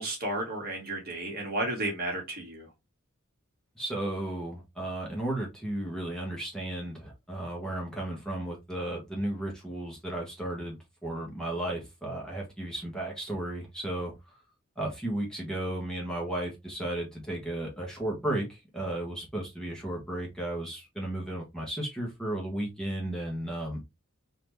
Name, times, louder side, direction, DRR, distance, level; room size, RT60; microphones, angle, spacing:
voice 1, 0.0-2.7, right 1 dB, 45° right, 1.6 m, -33 dB
voice 2, 3.8-14.4 14.8-23.8, right 1 dB, 5° left, 1.2 m, -34 dB
4.0 x 2.8 x 3.2 m
head